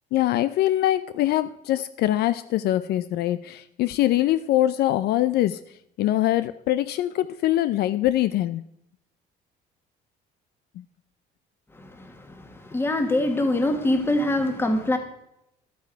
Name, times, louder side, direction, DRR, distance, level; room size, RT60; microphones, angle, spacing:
voice 1, 0.1-5.6 6.0-8.6, left 14 dB, 65° left, 0.5 m, -23 dB
voice 2, 11.7-15.0, left 1 dB, 15° left, 1.5 m, -24 dB
12.0 x 9.4 x 4.6 m
cardioid pair, 140°, 18 cm